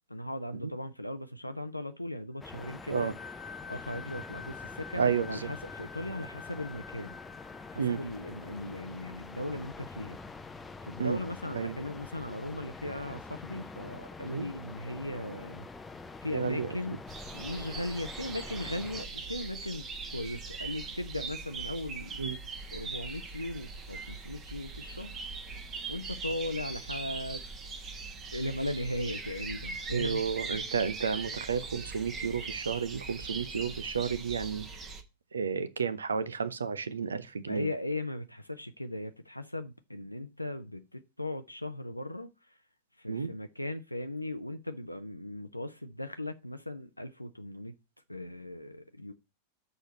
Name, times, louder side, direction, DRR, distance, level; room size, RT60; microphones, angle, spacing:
voice 1, 0.1-3.1 3.7-7.2 7.7-10.2 10.8-15.7 16.2-17.0 17.3-22.2 22.7-25.1 25.9-27.5 27.8-27.9 28.3-30.2 37.5-42.6 43.0-47.7 48.1-49.1, left 1 dB, 85° left, 0.5 m, -38 dB
sound 1, 2.4-8.9, left 6 dB, 30° left, 1.3 m, -48 dB
sound 2, 2.4-19.1, left 3 dB, 15° left, 0.6 m, -46 dB
voice 2, 5.0-5.5 7.8-8.0 11.0-11.2 11.5-11.8 14.3-14.5 16.3-16.7 22.2-22.4 29.9-34.7 35.3-37.7 43.1-43.3, right 6 dB, 70° right, 0.7 m, -31 dB
sound 3, 17.1-35.0, right 4 dB, 25° right, 1.1 m, -41 dB
6.5 x 4.4 x 6.6 m
figure-of-eight pair, 90°, 0 cm